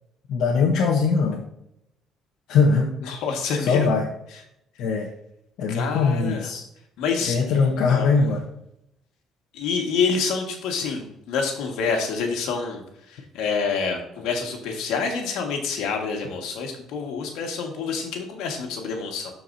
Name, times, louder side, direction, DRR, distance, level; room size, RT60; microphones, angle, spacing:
voice 1, 0.3-1.4 2.5-3.0 3.7-4.1 4.8-5.1 5.6-6.6 7.3-8.4, left 4 dB, 65° left, -1 dB, 1.0 m, -21 dB
voice 2, 3.0-3.9 4.3-4.4 5.7-6.5 7.0-7.4 7.9-8.1 9.5-12.8 13.1-19.3, left 5 dB, 80° left, 2 dB, 1.7 m, -27 dB
12.5 x 4.7 x 2.7 m, 0.78 s
cardioid pair, 175°, 0 cm